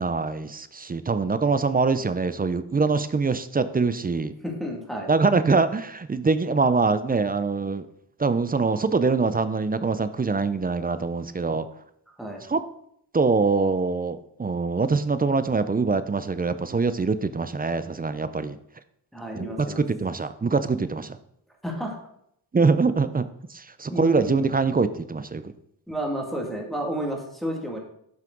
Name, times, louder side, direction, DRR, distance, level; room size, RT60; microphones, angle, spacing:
voice 1, 0.0-4.3 5.1-7.9 8.2-11.7 12.5-12.6 13.1-18.6 19.3-19.5 19.8-21.2 22.5-25.5, right 4 dB, 20° right, 12 dB, 0.4 m, -24 dB
voice 2, 4.4-5.1 12.2-12.4 19.1-19.8 21.6-22.0 23.9-24.5 25.9-27.8, equal, ahead, -1 dB, 2.1 m, -31 dB
7.7 x 5.7 x 3.8 m, 0.72 s
cardioid pair, 75°, 45 cm